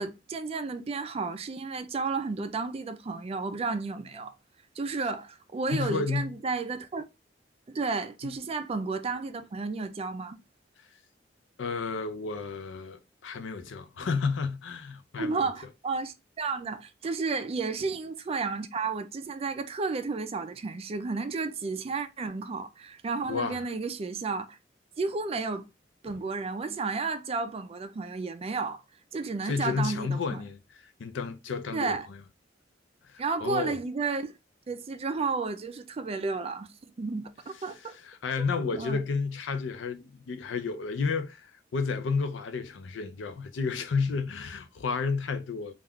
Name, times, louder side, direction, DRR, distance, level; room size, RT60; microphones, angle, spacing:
voice 1, 0.0-4.3 4.8-7.0 7.7-10.4 15.2-24.6 25.0-25.7 26.0-28.8 29.1-30.4 31.7-32.1 33.2-34.3 34.7-36.7 37.0-37.8 38.6-39.0, right 4 dB, 35° right, 0.3 m, -32 dB
voice 2, 5.7-6.3 8.2-8.3 11.6-15.5 23.3-23.6 29.4-30.6 31.0-32.2 33.0-33.8 38.0-45.7, left 4 dB, 75° left, 0.4 m, -31 dB
2.4 x 2.2 x 3.4 m
head